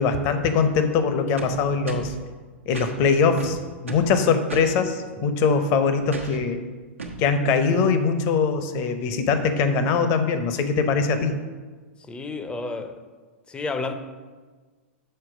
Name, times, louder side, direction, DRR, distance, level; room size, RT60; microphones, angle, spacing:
voice 1, 0.0-2.1 2.7-3.6 3.8-6.6 7.2-11.4, left 5 dB, 40° left, 0.8 m, -22 dB
sound 1, 1.4-2.2 2.7-2.9 3.4-4.1 4.5-4.7 6.1-6.4 7.0-7.2, right 3 dB, 90° right, 1.0 m, -36 dB
voice 2, 12.1-13.0 13.5-13.9, left 3 dB, 15° left, 0.6 m, -30 dB
6.7 x 4.4 x 6.1 m
hypercardioid pair, 105°, 7 cm